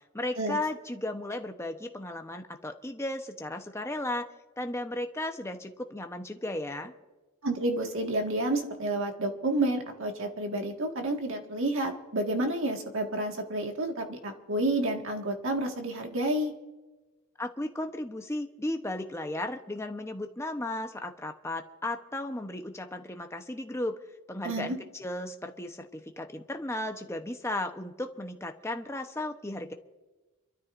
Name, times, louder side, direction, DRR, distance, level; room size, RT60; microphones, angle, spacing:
voice 1, 0.1-4.3 4.6-6.9 17.4-24.0 24.3-29.7, left 1 dB, 10° left, 5 dB, 0.9 m, -35 dB
voice 2, 7.4-16.5 24.4-24.8, right 1 dB, 60° right, 3 dB, 1.8 m, -30 dB
28.5 x 13.0 x 2.6 m, 1.2 s
head